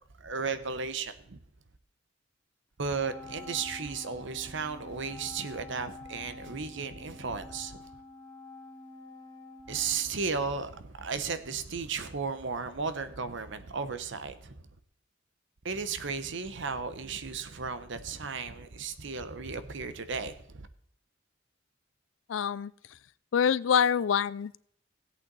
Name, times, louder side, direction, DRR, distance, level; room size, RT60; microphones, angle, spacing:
voice 1, 0.2-1.4 2.8-7.9 9.7-14.6 15.6-20.7, right 5 dB, 65° right, 11 dB, 1.0 m, -35 dB
Wind instrument woodwind instrument, 2.9-10.6, left 2 dB, 10° left, 5.7 m, -48 dB
voice 2, 22.3-22.7 23.3-24.6, left 7 dB, 70° left, 20 dB, 0.4 m, -25 dB
16.5 x 8.5 x 4.0 m, 0.66 s
head